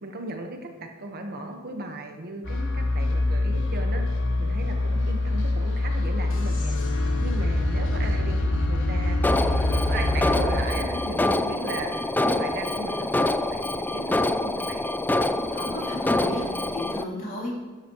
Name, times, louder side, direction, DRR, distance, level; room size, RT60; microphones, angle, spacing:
voice 1, 0.0-4.0 4.4-6.8 7.2-8.4 8.7-13.2 13.5-14.9, right 2 dB, 45° right, 4 dB, 1.2 m, -36 dB
sound 1, 2.4-10.7, left 2 dB, 60° left, 1.4 m, -24 dB
Alarm, 9.2-17.0, left 1 dB, 10° left, 0.3 m, -26 dB
voice 2, 15.5-17.5, left 1 dB, 40° left, -4 dB, 3.3 m, -33 dB
13.0 x 11.5 x 3.1 m, 1.4 s
head